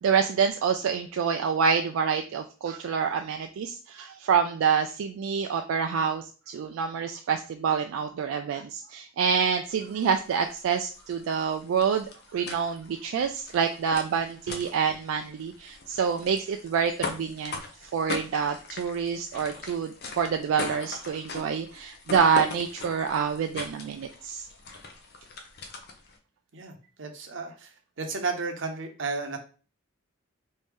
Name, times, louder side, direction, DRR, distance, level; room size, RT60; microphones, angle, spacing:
voice 1, 0.0-24.4, right 6 dB, 85° right, 5 dB, 0.3 m, -27 dB
sound 1, 9.6-26.2, left 3 dB, 50° left, 0.6 m, -41 dB
voice 2, 27.0-27.7 28.0-29.4, right 4 dB, 65° right, 4 dB, 0.7 m, -32 dB
3.2 x 2.7 x 3.5 m, 0.37 s
head